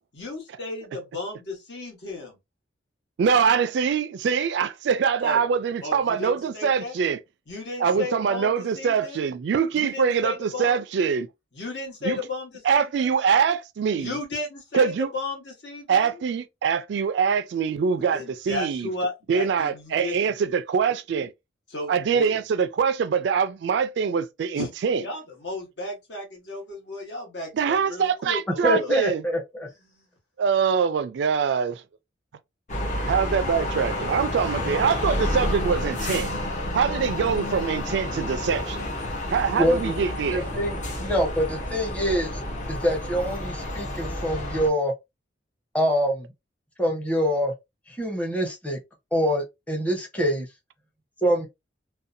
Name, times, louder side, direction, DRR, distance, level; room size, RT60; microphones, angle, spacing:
voice 1, 0.1-2.4 5.2-5.4 5.8-7.0 7.5-9.2 9.7-10.8 11.5-13.1 14.0-16.1 18.1-20.2 21.7-22.3 24.5-29.0 29.9-30.0, left 2 dB, 65° left, 1.2 m, -34 dB
voice 2, 3.2-7.2 7.8-11.3 12.0-12.2 12.7-14.2 14.7-15.1 15.9-18.9 19.3-21.3 21.9-25.0 27.5-29.2 30.4-31.8 33.0-36.3 36.7-38.9 39.3-40.5, right 6 dB, 65° right, 0.3 m, -24 dB
voice 3, 28.6-29.7 39.6-39.9 40.3-42.4 42.7-44.9 45.7-46.3 46.8-47.5 47.9-48.8 49.1-50.5 51.2-51.5, equal, 5° left, 0.7 m, -25 dB
sound 1, 32.7-44.7, left 1 dB, 40° left, 0.7 m, -30 dB
2.7 x 2.2 x 2.5 m
head